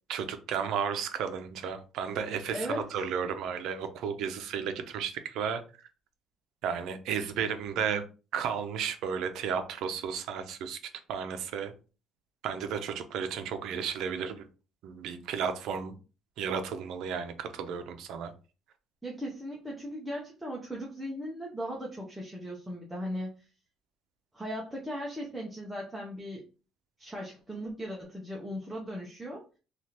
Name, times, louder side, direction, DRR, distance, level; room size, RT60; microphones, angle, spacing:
voice 1, 0.1-5.6 6.6-8.0 8.3-10.8 11.1-11.7 12.4-14.4 14.8-16.0 16.4-18.3, right 7 dB, 70° right, 8 dB, 0.5 m, -33 dB
voice 2, 2.5-3.0 19.0-23.4 24.3-26.4 27.0-29.4, equal, 5° right, -3 dB, 0.6 m, -38 dB
3.2 x 2.4 x 2.8 m, 0.33 s
cardioid pair, 150°, 0 cm